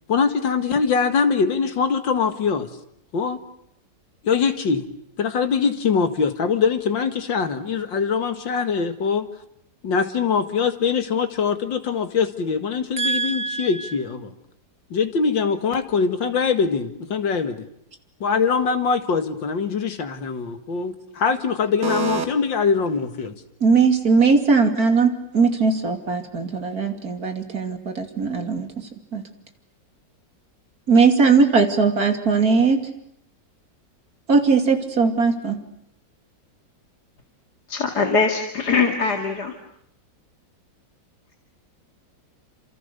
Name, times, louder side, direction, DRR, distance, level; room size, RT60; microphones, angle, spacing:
voice 1, 0.1-2.7 3.1-3.4 4.2-4.8 5.2-9.3 9.8-14.3 14.9-17.7 18.2-23.4, left 5 dB, 85° left, 8 dB, 2.6 m, -22 dB
voice 2, 13.0-13.9 21.8-22.2 23.6-29.2 30.9-32.8 34.3-35.6, right 4 dB, 55° right, 5 dB, 3.1 m, -20 dB
voice 3, 37.7-39.5, left 4 dB, 60° left, 3 dB, 2.7 m, -22 dB
29.0 x 27.0 x 6.8 m, 0.73 s
omnidirectional pair, 2.0 m